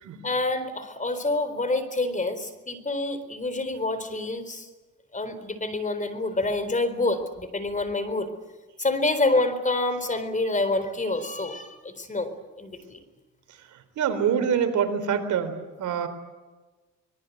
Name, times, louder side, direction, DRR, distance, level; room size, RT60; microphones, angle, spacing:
voice 1, 0.2-4.7 5.1-8.3 8.8-13.0, left 2 dB, 25° left, 11 dB, 4.1 m, -27 dB
voice 2, 14.0-16.1, right 7 dB, 75° right, 8 dB, 4.0 m, -25 dB
25.5 x 21.5 x 8.0 m, 1.2 s
cardioid pair, 90°, 30 cm